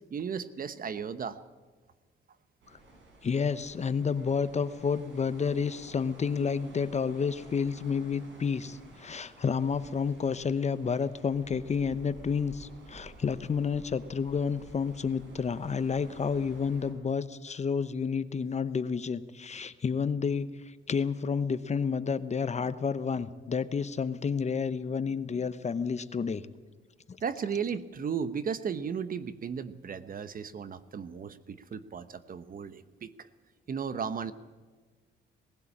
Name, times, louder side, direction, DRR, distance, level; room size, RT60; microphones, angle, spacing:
voice 1, 0.1-1.4 27.2-33.3 33.7-34.3, right 6 dB, 45° right, 13 dB, 1.0 m, -35 dB
sound 1, 2.6-16.9, right 2 dB, 70° right, 6.2 m, -53 dB
voice 2, 3.2-26.4, left 6 dB, 35° left, 14 dB, 0.9 m, -30 dB
19.5 x 15.5 x 8.6 m, 1.4 s
cardioid pair, 90°, 20 cm